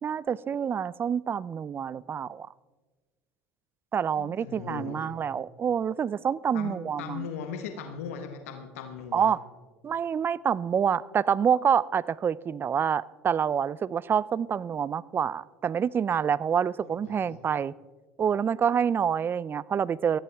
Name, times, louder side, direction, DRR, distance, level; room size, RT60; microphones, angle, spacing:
voice 1, 0.0-2.5 3.9-7.3 9.1-9.4 9.8-17.7 18.2-20.2, right 7 dB, 30° right, 22 dB, 0.4 m, -27 dB
voice 2, 4.1-5.1 6.5-9.3 16.8-17.4, left 7 dB, 85° left, 6 dB, 1.3 m, -39 dB
19.0 x 13.5 x 3.5 m, 1.4 s
supercardioid pair, 90°, 7 cm